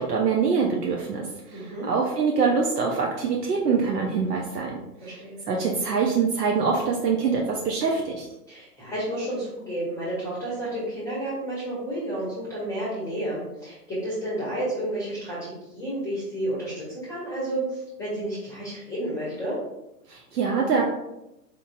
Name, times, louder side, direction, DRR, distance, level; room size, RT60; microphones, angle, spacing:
voice 1, 0.0-5.2 5.5-8.3 20.1-20.9, right 5 dB, 70° right, -1 dB, 0.7 m, -24 dB
voice 2, 1.5-1.9 5.0-5.4 8.5-19.6, right 1 dB, 5° left, -8 dB, 0.9 m, -31 dB
4.4 x 2.6 x 2.5 m, 0.92 s
figure-of-eight pair, 115°, 48 cm